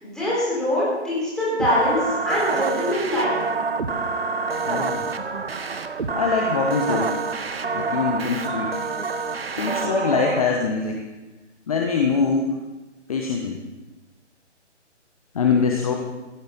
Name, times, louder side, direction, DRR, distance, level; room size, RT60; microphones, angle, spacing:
voice 1, 0.0-3.4, left 1 dB, ahead, -9 dB, 4.2 m, -23 dB
sound 1, 1.6-10.4, right 4 dB, 55° right, 1.1 m, -27 dB
voice 2, 4.6-5.0 6.1-7.2 7.7-8.8 9.5-11.0 11.7-12.6 13.1-13.6 15.3-15.9, left 5 dB, 30° left, 2 dB, 1.1 m, -23 dB
15.5 x 15.5 x 3.9 m, 1.1 s
figure-of-eight pair, 140°, 36 cm